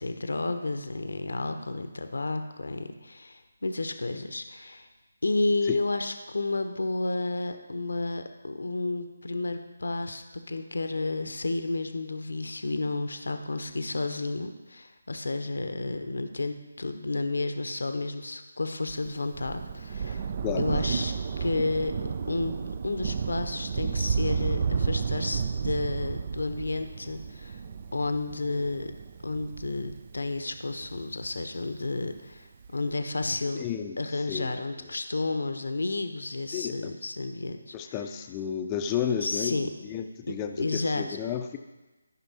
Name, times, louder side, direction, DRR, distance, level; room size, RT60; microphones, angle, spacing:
voice 1, 0.0-4.9 5.2-20.3 20.6-21.1 21.4-21.9 22.3-27.6 27.9-28.9 29.2-32.5 32.7-33.7 34.0-37.9 39.2-39.7 40.3-41.2, left 2 dB, 70° left, 7 dB, 0.9 m, -31 dB
Thunder, 18.9-31.8 32.6-32.7, right 6 dB, 35° right, 0.5 m, -32 dB
voice 2, 20.4-20.8 33.5-34.0 34.3-34.6 36.5-36.9 37.7-41.6, left 8 dB, 20° left, 6 dB, 0.6 m, -32 dB
13.5 x 5.9 x 4.3 m, 1.1 s
figure-of-eight pair, 150°, 0 cm